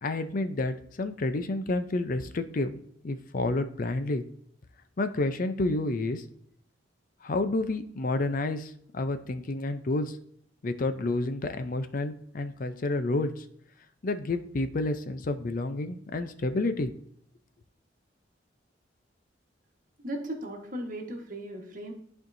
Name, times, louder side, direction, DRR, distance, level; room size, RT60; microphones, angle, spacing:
voice 1, 0.0-4.2 5.0-6.2 7.2-10.2 10.6-13.4 14.0-16.9, left 2 dB, 45° left, 10 dB, 0.5 m, -30 dB
voice 2, 20.0-21.9, right 1 dB, 45° right, 2 dB, 1.4 m, -36 dB
11.5 x 4.5 x 2.6 m, 0.66 s
head